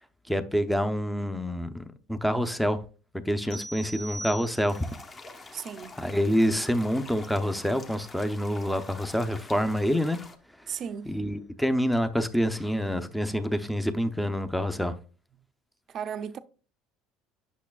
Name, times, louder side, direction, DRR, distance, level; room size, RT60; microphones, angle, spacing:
voice 1, 0.3-2.8 3.3-4.8 6.0-10.2 11.1-14.9, equal, ahead, 0.6 m, -27 dB
sound 1, 3.5-5.0, right 1 dB, 70° left, 1.9 m, -40 dB
sound 2, 4.7-10.4, left 3 dB, 25° left, 0.9 m, -46 dB
voice 2, 5.5-6.1 10.7-11.1 15.9-16.4, right 8 dB, 40° right, 0.5 m, -36 dB
8.4 x 6.2 x 2.4 m
cardioid pair, 125°, 0 cm